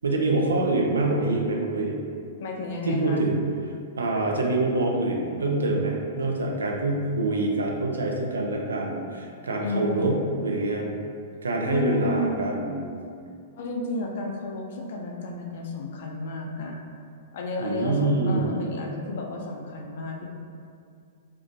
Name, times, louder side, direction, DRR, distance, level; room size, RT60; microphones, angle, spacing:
voice 1, 0.0-2.0 2.8-3.4 4.0-10.9 11.4-13.0 17.6-18.6, right 2 dB, 90° right, 0 dB, 0.4 m, -25 dB
voice 2, 2.4-3.2 9.6-10.2 11.6-12.4 13.6-16.8 17.3-20.3, left 2 dB, 65° left, 0 dB, 0.4 m, -32 dB
2.4 x 2.2 x 2.5 m, 2.3 s
hypercardioid pair, 115°, 0 cm